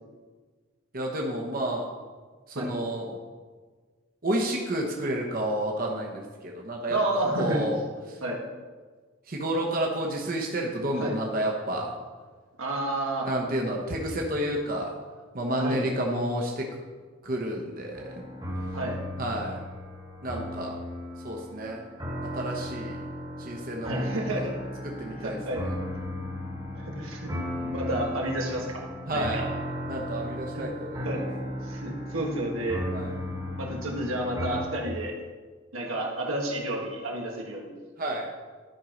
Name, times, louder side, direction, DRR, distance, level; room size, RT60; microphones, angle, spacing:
voice 1, 0.9-1.9 2.5-3.2 4.2-7.8 8.1-8.2 9.3-11.9 13.2-14.9 15.3-16.7 17.2-18.2 19.2-19.6 20.2-20.8 21.2-21.8 22.2-23.0 23.4-24.5 24.8-25.7 29.1-29.4 29.9-31.2 32.9-33.1 38.0-38.3, right 1 dB, 45° right, 0 dB, 1.0 m, -30 dB
voice 2, 6.9-7.6 8.2-8.4 11.0-11.2 12.6-13.3 15.6-15.8 18.7-19.0 23.8-24.6 25.2-25.6 26.7-29.5 30.5-30.7 31.0-31.2 31.6-32.9 33.6-35.1 35.7-37.7, right 1 dB, 90° right, -1 dB, 1.7 m, -31 dB
sound 1, 18.0-34.6, equal, 20° right, 1.4 m, -35 dB
11.5 x 4.6 x 5.2 m, 1.5 s
head